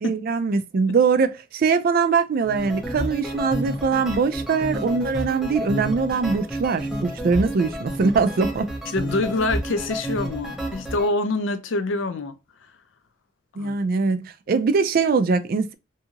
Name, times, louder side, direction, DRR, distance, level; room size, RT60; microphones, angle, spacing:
voice 1, 0.0-8.7 13.6-15.7, right 5 dB, 50° right, 0.3 m, -22 dB
sound 1, 2.4-11.1, equal, ahead, 0.6 m, -30 dB
voice 2, 8.9-12.4 13.6-13.7, left 2 dB, 80° left, 0.5 m, -25 dB
2.7 x 2.4 x 2.8 m
head